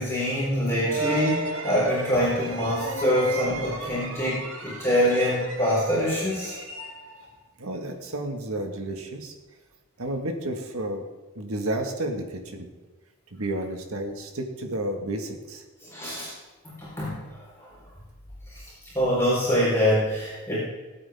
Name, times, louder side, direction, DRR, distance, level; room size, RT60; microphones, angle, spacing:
voice 1, 0.0-6.6 15.8-16.3 16.6-17.2 17.6-17.7 18.5-18.6 18.9-20.6, equal, 10° left, -9 dB, 4.2 m, -25 dB
sound 1, 0.8-7.3, right 2 dB, 70° right, 1.6 m, -34 dB
voice 2, 7.6-9.3 10.0-11.1 11.3-12.7 13.3-15.6, right 1 dB, 85° right, 4 dB, 1.7 m, -31 dB
19.0 x 8.6 x 3.6 m, 1.2 s
head